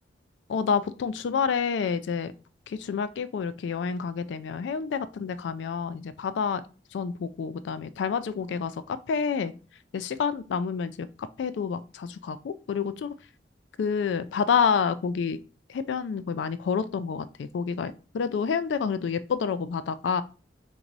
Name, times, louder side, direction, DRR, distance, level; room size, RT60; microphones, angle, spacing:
voice 1, 0.5-2.3 2.7-6.6 6.9-9.5 9.9-11.1 11.4-13.1 13.8-15.4 15.7-20.2, left 6 dB, 75° left, 13 dB, 0.3 m, -28 dB
4.0 x 2.6 x 4.5 m, 0.35 s
head